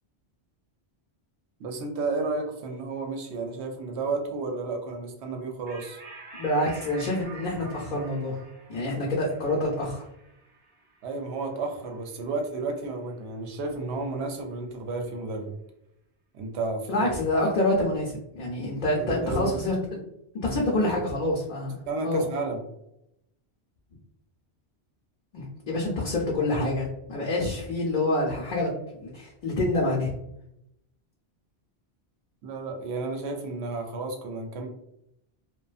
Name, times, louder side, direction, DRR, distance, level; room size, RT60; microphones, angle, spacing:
voice 1, 1.6-6.0 11.0-15.5 16.3-17.1 19.0-19.7 20.4-20.5 20.8-20.9 21.9-22.6 32.4-34.7, right 3 dB, 80° right, 3 dB, 0.8 m, -32 dB
sound 1, 5.7-12.5, right 3 dB, 50° right, 0.8 m, -48 dB
voice 2, 6.4-8.4 8.7-10.0 16.9-20.0 20.3-22.3 25.3-28.7 29.0-30.1, left 1 dB, 55° left, -3 dB, 0.6 m, -27 dB
2.5 x 2.2 x 2.3 m, 0.83 s
omnidirectional pair, 1.1 m